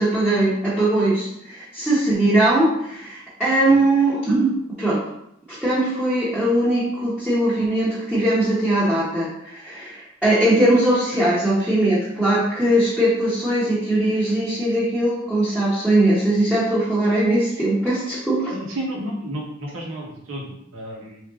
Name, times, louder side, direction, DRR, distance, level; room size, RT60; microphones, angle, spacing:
voice 1, 0.0-4.5 4.8-5.0 5.5-18.5, right 1 dB, 5° right, -11 dB, 0.8 m, -20 dB
voice 2, 18.5-21.2, right 1 dB, 85° right, -1 dB, 1.0 m, -32 dB
3.5 x 2.6 x 3.5 m, 0.78 s
head